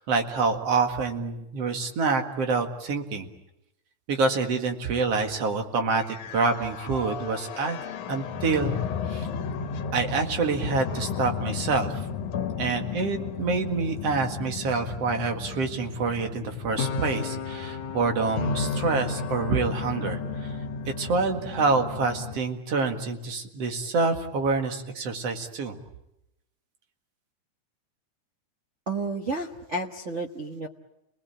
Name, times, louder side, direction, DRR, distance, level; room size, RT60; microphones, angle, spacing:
voice 1, 0.0-3.3 4.1-7.8 8.1-8.8 9.1-9.3 9.9-12.0 12.6-20.6 21.0-25.8, right 4 dB, 55° right, 5 dB, 2.9 m, -27 dB
sound 1, 6.0-22.4, left 5 dB, 75° left, 2.6 m, -33 dB
voice 2, 28.9-30.7, right 2 dB, 80° right, 4 dB, 0.6 m, -31 dB
29.5 x 20.0 x 8.9 m, 0.89 s
omnidirectional pair, 3.5 m